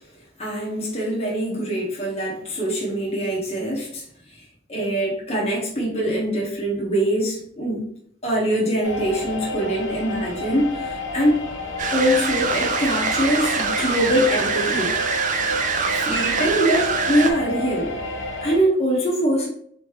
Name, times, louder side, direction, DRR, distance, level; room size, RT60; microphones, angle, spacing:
voice 1, 0.4-4.0 4.7-7.9 8.2-11.4 11.9-15.0 16.0-17.9 18.4-19.5, equal, 35° left, -4 dB, 1.2 m, -23 dB
sound 1, 8.8-18.6, left 1 dB, 90° left, 1.0 m, -31 dB
sound 2, 11.8-17.3, right 5 dB, 40° right, 0.5 m, -24 dB
4.2 x 3.3 x 3.0 m, 0.64 s
head